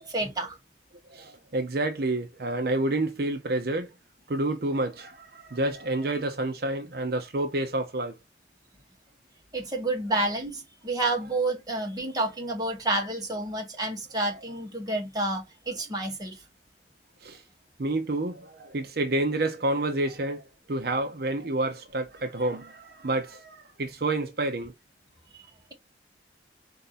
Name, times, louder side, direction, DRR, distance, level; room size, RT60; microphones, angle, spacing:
voice 1, 0.1-0.6 9.5-16.4, right 2 dB, 20° right, 1.4 m, -29 dB
voice 2, 1.1-3.9 4.3-8.1 17.2-17.4 17.8-24.7, right 2 dB, 60° right, 0.7 m, -29 dB
4.5 x 2.7 x 4.0 m
head